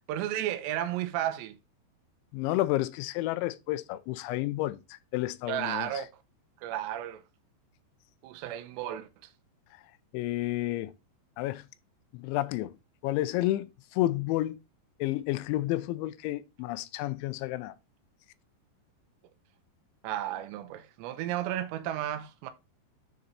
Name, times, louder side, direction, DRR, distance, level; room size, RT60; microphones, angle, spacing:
voice 1, 0.1-1.6 5.5-6.1 6.6-7.2 8.2-9.1 20.0-22.5, right 12 dB, 80° right, 2.7 m, -33 dB
voice 2, 2.3-6.0 10.1-10.9 11.4-11.7 12.1-12.7 13.0-14.6 15.0-17.7, left 16 dB, 85° left, 2.8 m, -31 dB
9.5 x 4.0 x 4.0 m
omnidirectional pair, 5.5 m